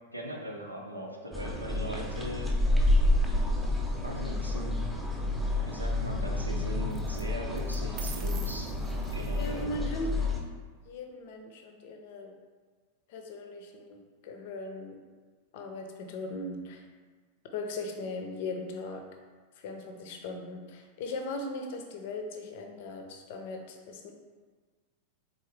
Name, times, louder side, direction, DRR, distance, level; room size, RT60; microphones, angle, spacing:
voice 1, 0.1-2.5 4.0-4.7 5.7-8.7 9.1-9.7, equal, 85° right, 0 dB, 0.7 m, -39 dB
sound 1, 1.3-10.4, left 1 dB, ahead, 0.7 m, -29 dB
sound 2, 4.1-4.6 6.9-7.2 7.6-9.6, right 8 dB, 40° right, 0.5 m, -46 dB
voice 2, 9.4-10.3 10.8-12.3 13.1-15.0 15.5-16.9 17.5-19.0 19.6-24.1, left 2 dB, 50° left, 4 dB, 0.6 m, -39 dB
3.9 x 3.7 x 3.2 m, 1.5 s
figure-of-eight pair, 90°, 0 cm